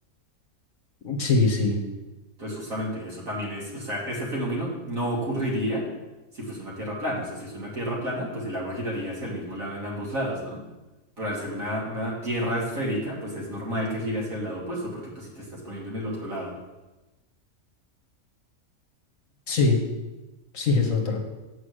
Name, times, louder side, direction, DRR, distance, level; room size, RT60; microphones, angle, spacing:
voice 1, 1.0-1.8 19.5-19.8 20.5-21.2, left 3 dB, 60° left, 1 dB, 1.6 m, -22 dB
voice 2, 2.4-5.9 6.3-10.6 11.2-16.5, equal, 65° right, -4 dB, 2.5 m, -31 dB
8.2 x 5.1 x 6.5 m, 1.1 s
omnidirectional pair, 1.6 m